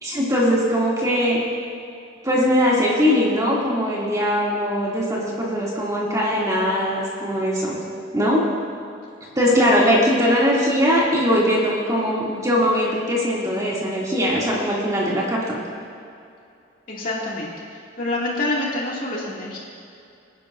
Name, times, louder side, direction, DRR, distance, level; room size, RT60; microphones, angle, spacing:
voice 1, 0.0-1.4 2.2-7.8 8.1-8.4 9.3-15.6, equal, 20° right, -6 dB, 2.6 m, -20 dB
voice 2, 16.9-19.6, left 2 dB, 45° left, -5 dB, 2.4 m, -27 dB
24.5 x 10.5 x 2.6 m, 2.5 s
head